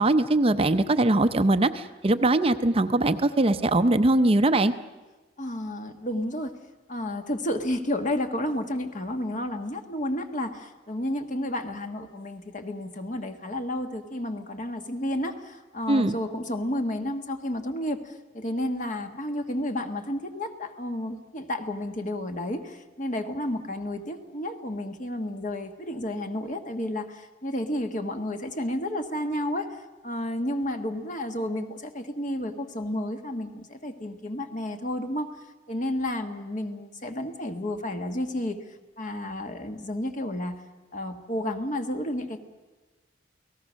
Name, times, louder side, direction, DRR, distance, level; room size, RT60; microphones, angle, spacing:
voice 1, 0.0-4.7 15.9-16.1, right 2 dB, 30° right, 10 dB, 0.6 m, -21 dB
voice 2, 5.4-6.5 6.9-35.3 35.7-38.6 39.0-40.6 40.9-42.4, left 1 dB, 40° left, 6 dB, 1.6 m, -31 dB
29.0 x 18.5 x 6.3 m, 1.2 s
head